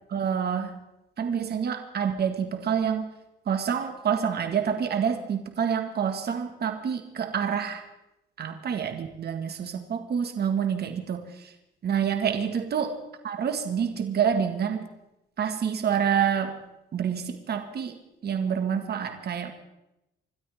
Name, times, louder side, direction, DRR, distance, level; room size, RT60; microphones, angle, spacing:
voice 1, 0.1-0.8 1.2-3.1 3.5-7.8 8.4-11.5 11.8-13.0 13.2-14.9 15.4-16.6 16.9-18.0 18.2-19.5, right 7 dB, 55° right, 6 dB, 1.8 m, -27 dB
26.0 x 13.0 x 3.6 m, 0.89 s
cardioid pair, 90°, 20 cm